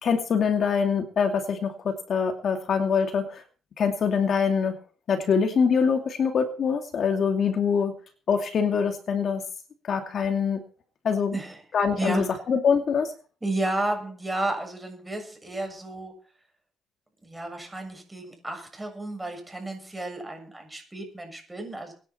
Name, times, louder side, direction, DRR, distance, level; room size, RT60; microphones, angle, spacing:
voice 1, 0.0-3.4 3.8-4.8 5.1-7.9 8.3-9.4 9.9-10.6 11.0-11.4 11.7-13.1, left 6 dB, 55° left, 5 dB, 2.4 m, -24 dB
voice 2, 13.4-16.1 17.2-21.9, right 2 dB, 15° right, 4 dB, 7.0 m, -32 dB
23.5 x 10.5 x 4.4 m, 0.40 s
cardioid pair, 90°, 0 cm